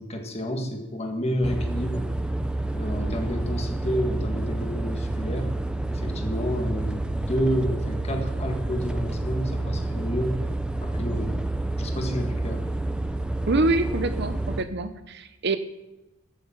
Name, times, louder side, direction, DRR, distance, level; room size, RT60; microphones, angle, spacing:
voice 1, 0.0-2.1 2.7-5.5 5.9-10.4 10.8-11.3 11.8-12.6, equal, 30° left, 3 dB, 1.8 m, -30 dB
sound 1, 1.4-14.6, right 2 dB, 5° right, 0.6 m, -29 dB
voice 2, 13.5-15.6, right 2 dB, 50° right, 11 dB, 0.8 m, -25 dB
14.0 x 7.1 x 7.7 m, 0.96 s
head